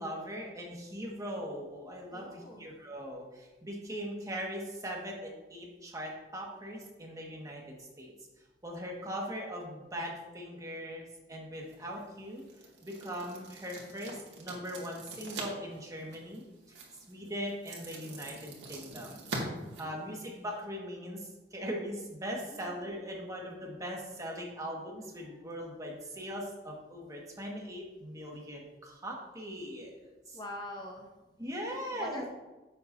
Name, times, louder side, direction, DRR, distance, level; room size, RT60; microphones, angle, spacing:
voice 1, 0.0-8.1 8.6-12.4 12.8-16.4 17.1-19.2 19.8-21.2 21.5-30.4 31.4-32.3, equal, 20° right, -1 dB, 1.6 m, -40 dB
voice 2, 2.1-2.7 19.8-20.2 22.5-22.8 30.3-31.1 31.9-32.3, left 1 dB, 25° left, 1 dB, 0.7 m, -44 dB
sound 1, 11.5-20.6, right 3 dB, 90° right, 2.0 m, -45 dB
10.5 x 7.4 x 2.7 m, 1.1 s
head